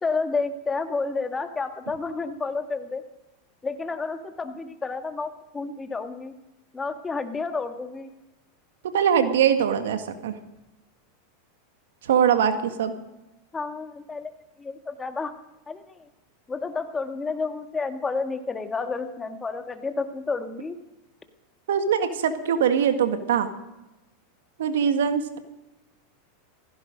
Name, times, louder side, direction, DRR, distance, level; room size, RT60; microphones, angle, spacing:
voice 1, 0.0-3.0 3.6-6.3 6.7-8.1 13.5-14.3 14.6-15.3 15.7-16.1 16.5-20.8, left 4 dB, 15° left, 7 dB, 1.8 m, -30 dB
voice 2, 8.9-10.4 12.0-12.9 21.7-23.5 24.6-25.4, right 8 dB, 75° right, 8 dB, 1.7 m, -22 dB
16.0 x 15.5 x 5.2 m, 0.99 s
hypercardioid pair, 95°, 0 cm